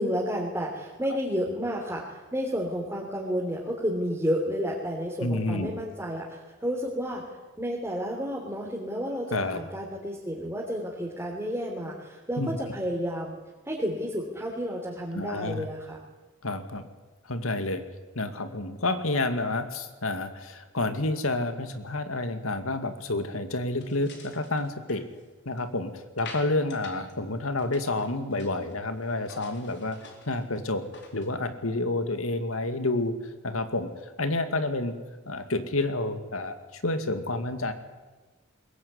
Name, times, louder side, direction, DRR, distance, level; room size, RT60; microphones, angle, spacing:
voice 1, 0.0-7.3 7.6-13.4 13.7-16.0, equal, 10° right, -3 dB, 3.5 m, -31 dB
voice 2, 5.2-5.7 9.3-9.6 12.4-12.6 15.1-15.7 16.4-16.8 17.3-17.8 18.1-25.0 25.5-30.0 30.3-30.8 31.1-33.2 33.4-33.9 34.2-35.0 35.3-37.7, left 2 dB, 80° left, 9 dB, 2.3 m, -29 dB
sound 1, 23.8-25.7 26.2-27.1 27.4-28.8 29.1-31.3, left 4 dB, 55° left, 4.1 m, -47 dB
22.0 x 20.5 x 9.7 m, 1.2 s
head